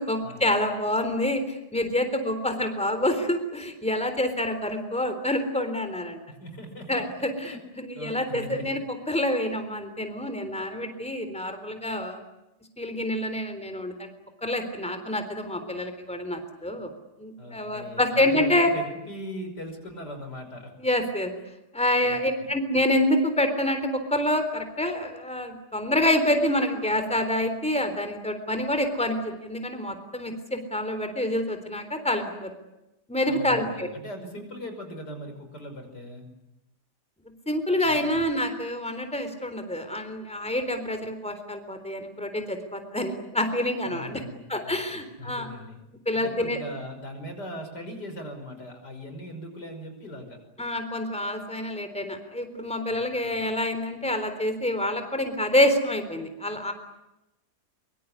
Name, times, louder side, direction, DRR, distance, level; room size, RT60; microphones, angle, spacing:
voice 1, 0.0-6.2 6.9-7.5 7.8-8.8 9.1-12.2 12.8-14.1 14.4-16.9 17.2-18.7 20.8-21.4 21.7-32.5 33.1-33.9 37.5-44.2 44.5-45.5 46.1-46.6 50.6-56.7, left 1 dB, 5° left, 7 dB, 3.7 m, -27 dB
voice 2, 6.3-7.0 7.4-7.6 7.9-8.8 17.4-20.7 22.0-22.5 33.3-36.3 37.8-38.2 43.8-45.8 46.1-50.4 52.9-53.4, equal, 85° left, 6 dB, 6.2 m, -40 dB
25.0 x 24.0 x 9.8 m, 0.91 s
omnidirectional pair, 1.7 m